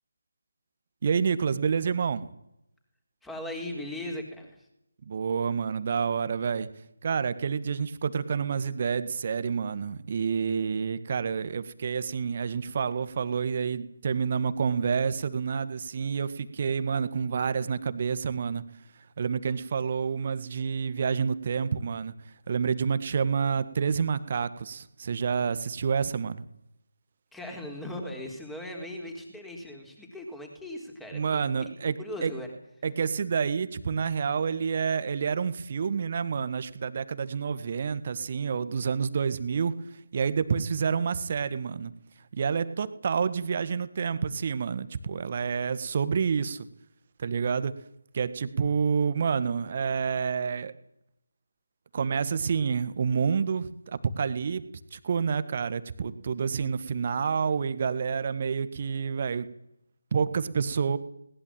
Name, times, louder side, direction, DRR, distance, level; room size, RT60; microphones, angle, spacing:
voice 1, 1.0-2.3 5.1-6.7 7.0-18.6 19.2-22.1 22.5-26.4 31.1-32.3 32.8-39.7 40.1-41.9 42.3-46.7 47.2-47.7 48.1-50.7 51.9-54.6 54.9-59.5 60.1-61.0, right 6 dB, 35° right, 13 dB, 1.7 m, -28 dB
voice 2, 3.2-4.7 27.3-31.4 32.0-32.5, left 1 dB, 5° left, 3 dB, 4.3 m, -38 dB
21.0 x 19.5 x 9.0 m, 0.79 s
figure-of-eight pair, 155°, 0 cm